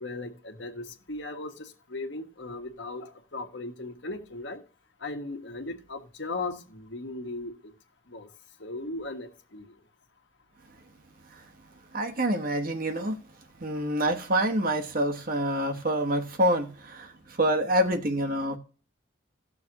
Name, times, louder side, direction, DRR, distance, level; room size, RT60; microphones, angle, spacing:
voice 1, 0.0-4.6 5.0-7.5 8.1-8.3 8.6-9.6, left 2 dB, 60° left, 1.5 m, -37 dB
voice 2, 11.9-13.2 13.6-17.1 17.4-18.6, right 1 dB, 45° right, 1.1 m, -26 dB
17.0 x 6.7 x 2.9 m
head